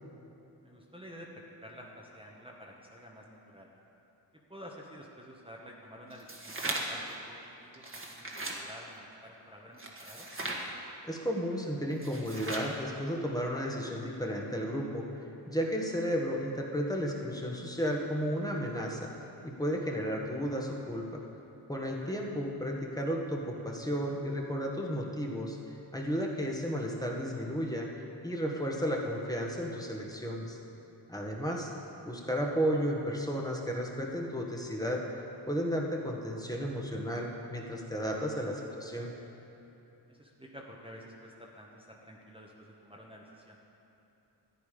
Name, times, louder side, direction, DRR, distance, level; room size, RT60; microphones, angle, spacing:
voice 1, 0.6-3.7 4.5-10.3 21.9-22.1 40.1-43.6, equal, 10° right, -3 dB, 1.3 m, -50 dB
sound 1, 6.1-7.1 7.7-8.6 9.8-10.7 11.9-12.8, right 2 dB, 30° right, 1.7 m, -38 dB
voice 2, 11.0-15.1 15.5-19.1 19.4-21.2 21.7-25.6 25.9-27.9 28.2-30.6 31.1-31.7 32.0-35.0 35.5-39.1, equal, 10° left, -1 dB, 1.5 m, -33 dB
13.5 x 9.4 x 5.1 m, 2.9 s
cardioid pair, 70°, 44 cm